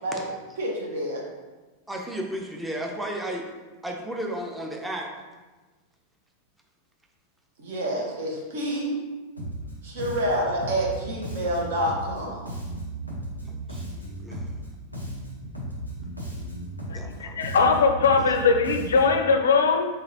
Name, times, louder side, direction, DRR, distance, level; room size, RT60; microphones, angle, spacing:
voice 1, 0.6-1.2 7.6-9.0 9.8-12.5, right 1 dB, 55° right, -2 dB, 0.9 m, -28 dB
voice 2, 1.9-3.4 3.8-5.1 13.4-14.5 16.9-17.3, right 1 dB, 5° right, 0 dB, 0.5 m, -34 dB
Bass guitar, 9.4-9.7 10.0-14.7 14.9-19.3, right 1 dB, 90° right, 0.8 m, -35 dB
voice 3, 16.9-19.9, left 4 dB, 65° left, 6 dB, 0.4 m, -21 dB
3.9 x 3.8 x 2.6 m, 1.2 s
figure-of-eight pair, 90°, 0 cm